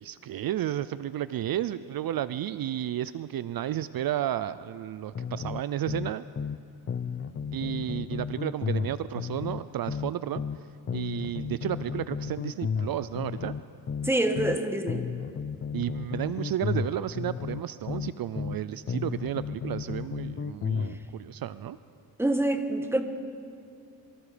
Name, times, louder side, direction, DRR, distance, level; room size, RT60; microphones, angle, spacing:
voice 1, 0.0-6.2 7.5-10.4 10.9-13.6 15.7-21.8, right 12 dB, 65° right, 15 dB, 0.6 m, -32 dB
sound 1, 5.2-6.6 6.9-10.6 10.9-14.6 14.9-18.6 18.9-21.0, left 6 dB, 35° left, 0.6 m, -33 dB
voice 2, 14.0-15.0 22.2-23.0, right 1 dB, 5° right, 6 dB, 1.4 m, -26 dB
26.0 x 24.0 x 5.1 m, 2.4 s
wide cardioid pair, 135°, 39 cm